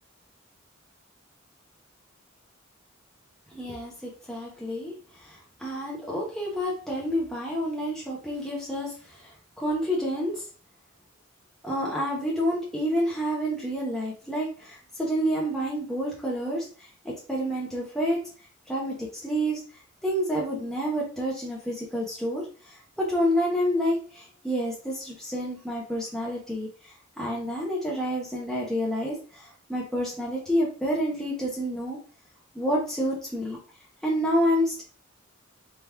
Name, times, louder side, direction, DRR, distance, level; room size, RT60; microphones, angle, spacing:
voice 1, 3.5-4.9 5.3-8.9 9.6-10.4 11.6-16.6 17.0-18.2 18.7-19.6 20.0-22.4 23.0-26.7 27.2-32.0 32.5-33.6 34.0-34.8, equal, ahead, -5 dB, 1.0 m, -28 dB
3.5 x 3.0 x 3.4 m, 0.39 s
head